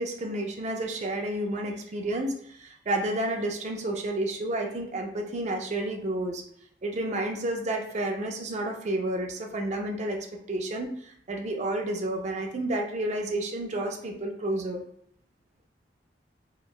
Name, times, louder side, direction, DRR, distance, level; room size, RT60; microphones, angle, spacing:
voice 1, 0.0-6.4 6.8-14.8, right 1 dB, 40° right, 2 dB, 0.4 m, -31 dB
2.9 x 2.1 x 2.2 m, 0.69 s
head